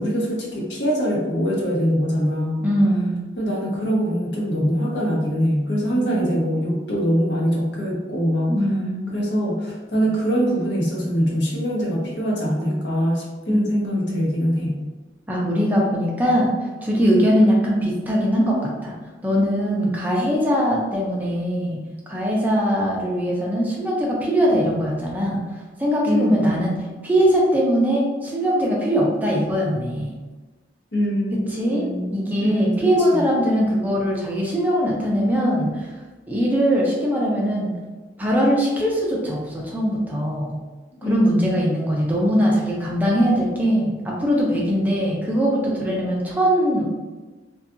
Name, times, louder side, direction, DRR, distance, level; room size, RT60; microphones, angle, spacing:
voice 1, 0.0-2.7 3.4-8.6 9.1-14.8 26.1-26.5 30.9-33.2 41.0-41.4, equal, 80° left, -3 dB, 0.8 m, -23 dB
voice 2, 2.6-3.2 5.9-6.2 8.5-9.1 13.5-14.2 15.3-16.5 16.8-18.9 19.2-21.8 22.1-25.4 25.8-26.8 27.0-30.1 31.5-35.9 36.3-37.8 38.2-40.6 41.0-46.8, equal, 10° right, -4 dB, 0.4 m, -21 dB
2.7 x 2.3 x 2.4 m, 1.2 s
head